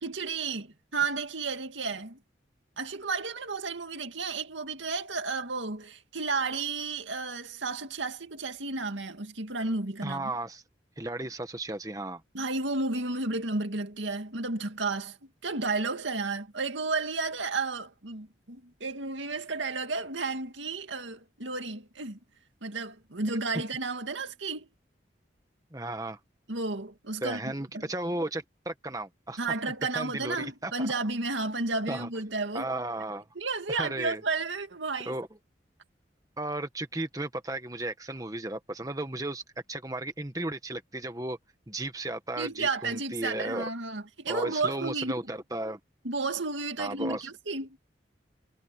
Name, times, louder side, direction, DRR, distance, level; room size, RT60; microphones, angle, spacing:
voice 1, 0.0-2.2 2.8-10.3 12.3-15.2 15.4-22.2 22.6-24.7 26.5-27.8 29.4-32.7 33.4-35.1 42.4-45.1 46.0-47.8, right 3 dB, 90° right, 2.3 m, -32 dB
voice 2, 10.0-10.6 11.0-12.2 25.7-26.2 27.2-29.4 29.9-30.9 31.9-32.1 32.5-33.3 33.7-34.2 35.0-35.3 36.4-39.4 39.7-41.4 41.7-43.7 44.3-45.8 46.8-47.3, right 2 dB, 20° right, 1.4 m, -34 dB
head